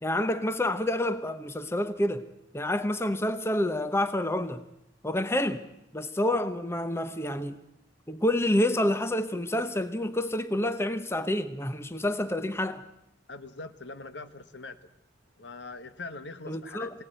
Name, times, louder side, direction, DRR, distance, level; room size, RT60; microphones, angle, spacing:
voice 1, 0.0-2.2 2.5-4.6 5.0-5.6 5.9-7.6 8.1-12.8 16.5-16.9, left 1 dB, 15° left, 0.8 m, -28 dB
voice 2, 13.3-14.8 15.4-17.0, left 3 dB, 65° left, 1.2 m, -42 dB
23.5 x 17.5 x 9.1 m
head